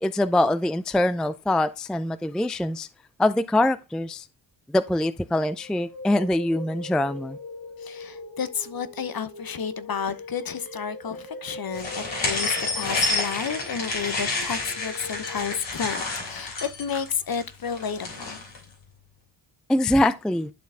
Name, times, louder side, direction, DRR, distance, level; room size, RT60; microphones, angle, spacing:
voice 1, 0.0-2.9 3.2-4.3 4.7-7.4 19.7-20.5, left 1 dB, ahead, 0.4 m, -23 dB
sound 1, 5.3-15.6, left 2 dB, 85° left, 3.3 m, -41 dB
voice 2, 7.8-18.4, left 7 dB, 50° left, 0.9 m, -31 dB
sound 2, 11.7-18.6, left 3 dB, 70° left, 3.2 m, -29 dB
11.5 x 4.1 x 3.4 m
cardioid pair, 55°, 47 cm